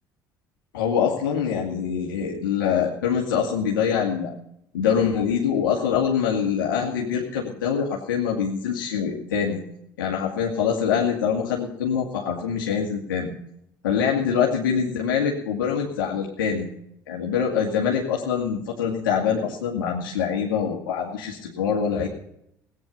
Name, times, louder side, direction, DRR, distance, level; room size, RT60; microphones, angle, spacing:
voice 1, 0.7-4.3 4.7-9.6 10.0-13.3 13.8-16.6 17.1-22.1, left 7 dB, 80° left, -2 dB, 2.2 m, -24 dB
18.0 x 9.6 x 5.5 m, 0.76 s
hypercardioid pair, 60°, 11 cm